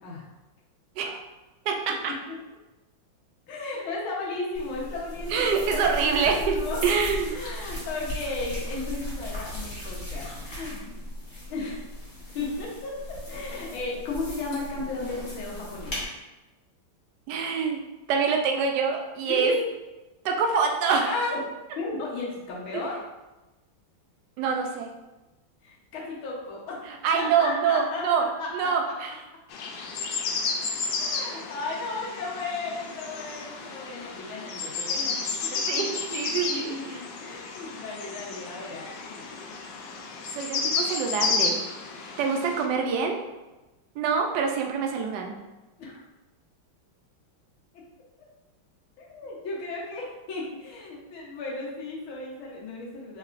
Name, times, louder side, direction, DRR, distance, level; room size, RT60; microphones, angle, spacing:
voice 1, 1.7-2.1 5.3-6.6 6.8-7.4 17.3-17.8 18.1-19.5 20.2-21.1 24.4-24.9 27.0-28.2 28.5-29.1 35.5-37.0 40.3-41.6 42.2-43.2 44.0-45.3, right 6 dB, 70° right, 3 dB, 1.1 m, -25 dB
voice 2, 3.5-6.8 7.3-11.0 11.5-11.8 12.4-16.0 19.2-19.7 21.0-21.4 21.8-23.0 25.6-26.8 27.1-28.7 31.0-39.3 45.8-46.0 49.0-53.2, left 3 dB, 90° left, -4 dB, 1.8 m, -35 dB
sound 1, 4.5-16.0, left 1 dB, 30° left, 1.1 m, -37 dB
sound 2, 29.5-42.7, left 4 dB, 70° left, 1.2 m, -32 dB
4.7 x 3.3 x 2.5 m, 1.1 s
omnidirectional pair, 2.2 m